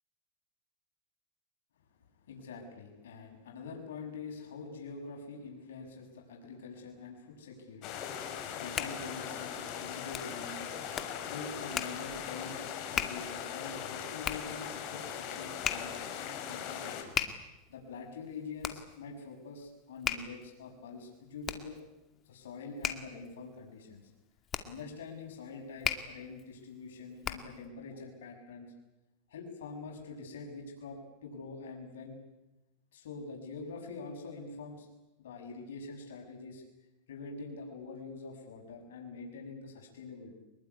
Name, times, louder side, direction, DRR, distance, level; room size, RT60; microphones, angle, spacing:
voice 1, 2.2-10.8 11.2-12.6 12.9-15.9 16.5-17.1 17.7-21.8 22.3-24.0 24.6-28.7 29.3-32.2 32.9-34.9 35.2-36.6 37.1-40.3, left 4 dB, 90° left, 1 dB, 7.2 m, -45 dB
sound 1, 7.8-17.0, left 8 dB, 45° left, 5.3 m, -40 dB
Hands, 8.3-27.7, left 8 dB, 25° left, 2.2 m, -40 dB
24.5 x 22.0 x 9.8 m, 1.0 s
supercardioid pair, 135°, 0 cm